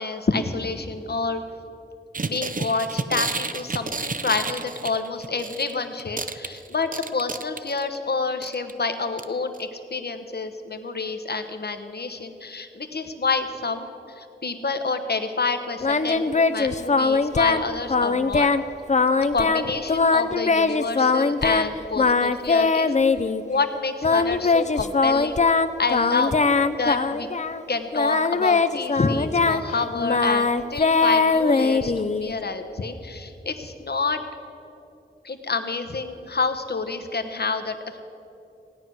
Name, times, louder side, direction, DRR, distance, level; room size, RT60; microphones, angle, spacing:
voice 1, 0.0-1.4 2.2-18.5 19.2-22.9 23.4-25.4 25.8-26.4 26.8-27.3 27.7-34.2 35.2-38.0, left 4 dB, 60° left, 8 dB, 1.0 m, -28 dB
sound 1, 2.1-5.7 6.0-8.0 8.4-8.7 9.2-9.3 9.5-9.6, right 4 dB, 45° right, 0.6 m, -30 dB
Singing, 15.8-17.6 17.9-18.6 18.9-21.7 22.0-23.4 24.0-27.6 27.9-32.3, left 4 dB, 40° left, 0.5 m, -21 dB
16.5 x 9.5 x 6.2 m, 2.8 s
wide cardioid pair, 65°, 19 cm